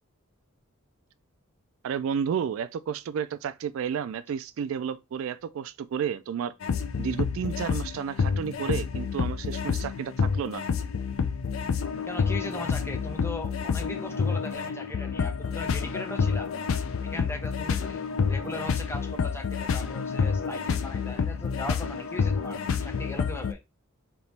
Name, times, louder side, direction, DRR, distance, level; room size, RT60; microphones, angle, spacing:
voice 1, 1.8-6.5 7.0-10.7, right 7 dB, 70° right, 0.3 m, -31 dB
sound 1, 6.6-23.5, left 5 dB, 70° left, 0.4 m, -29 dB
voice 2, 12.1-16.5 17.0-23.6, left 1 dB, 10° left, 0.6 m, -39 dB
3.4 x 2.9 x 4.1 m
head